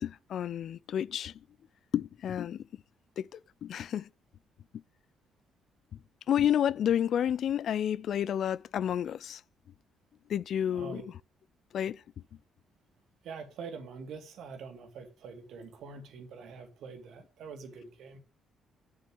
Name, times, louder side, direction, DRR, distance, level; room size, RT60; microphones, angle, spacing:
voice 1, 0.0-1.3 1.9-2.6 3.2-4.1 6.3-9.4 10.3-11.0 11.7-12.0, left 9 dB, 65° left, 0.4 m, -30 dB
voice 2, 13.2-18.2, right 5 dB, 75° right, 2.4 m, -45 dB
7.6 x 7.0 x 6.3 m
cardioid pair, 90°, 0 cm